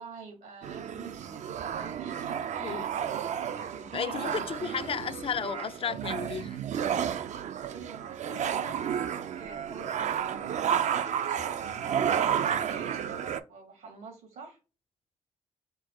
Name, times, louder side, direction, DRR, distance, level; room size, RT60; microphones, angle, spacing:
voice 1, 0.0-4.5 7.7-14.6, right 5 dB, 85° right, 1.6 m, -46 dB
sound 1, 0.6-13.4, right 8 dB, 60° right, 0.4 m, -32 dB
voice 2, 3.9-6.6, left 7 dB, 40° left, 0.3 m, -33 dB
4.5 x 2.1 x 4.2 m
supercardioid pair, 50°, 14 cm